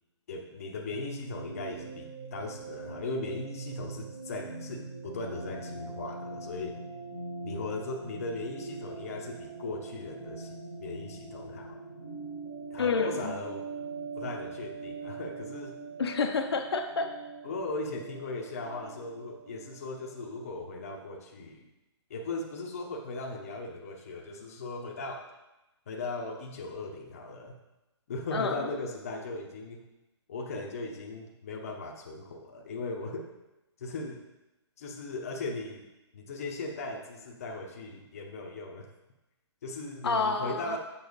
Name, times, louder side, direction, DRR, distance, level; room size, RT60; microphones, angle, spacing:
voice 1, 0.3-6.8 7.4-11.8 12.7-13.7 14.2-15.8 17.4-21.6 22.1-25.2 25.9-27.5 28.1-29.8 30.3-33.3 33.8-34.2 34.8-35.8 36.1-38.9 39.6-40.8, left 3 dB, 30° left, 0 dB, 0.8 m, -38 dB
sound 1, 0.9-20.4, right 4 dB, 45° right, 2.7 m, -42 dB
voice 2, 12.8-13.3 16.0-17.1 28.3-28.7 40.0-40.8, left 4 dB, 60° left, 4 dB, 0.8 m, -29 dB
7.0 x 5.7 x 4.0 m, 0.99 s
hypercardioid pair, 175°, 15 cm